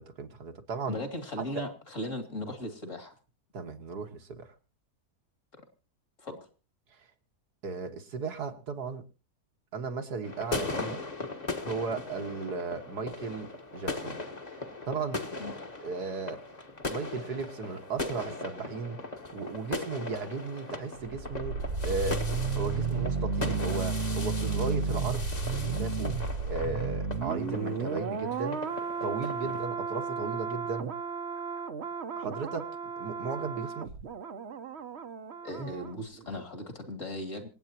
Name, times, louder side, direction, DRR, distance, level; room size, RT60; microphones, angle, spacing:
voice 1, 0.0-1.0 1.4-1.6 2.4-2.5 3.5-4.5 7.6-9.0 9.7-11.0 11.6-14.2 14.8-15.2 15.8-16.4 16.8-19.0 19.3-21.6 21.8-22.3 22.6-25.3 25.8-26.1 26.5-28.6 29.0-30.9 32.2-32.7 33.0-33.9, right 4 dB, 85° right, 4 dB, 2.2 m, -35 dB
voice 2, 0.9-3.2 5.5-5.6 6.2-6.4 15.4-15.5 29.4-29.5 35.4-37.5, left 1 dB, 50° left, 6 dB, 3.0 m, -37 dB
sound 1, 10.2-29.7, left 2 dB, 25° left, 1.5 m, -39 dB
sound 2, 21.0-35.9 36.2-36.4, right 5 dB, 50° right, 1.1 m, -33 dB
26.5 x 8.9 x 2.9 m, 0.33 s
omnidirectional pair, 1.7 m